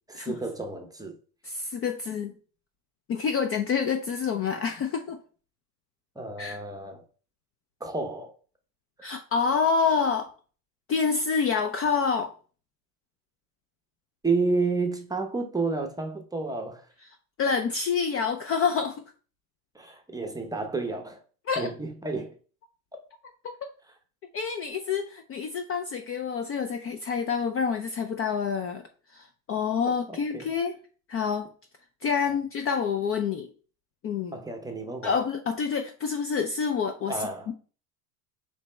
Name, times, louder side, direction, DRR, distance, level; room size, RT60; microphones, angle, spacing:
voice 1, 0.1-1.1 6.2-7.0 7.8-8.3 14.2-16.9 19.7-21.2 21.6-22.3 29.8-30.5 34.3-35.1 37.1-37.5, right 3 dB, 10° right, 0.6 m, -31 dB
voice 2, 1.4-2.3 3.1-5.2 6.4-6.6 9.0-10.3 10.9-12.3 17.4-19.0 21.5-21.7 23.4-23.7 24.3-28.8 29.1-30.7 31.1-31.5 32.0-33.5 34.0-34.3 35.0-37.3, left 6 dB, 30° left, 0.4 m, -27 dB
3.3 x 3.0 x 4.2 m
supercardioid pair, 105°, 46 cm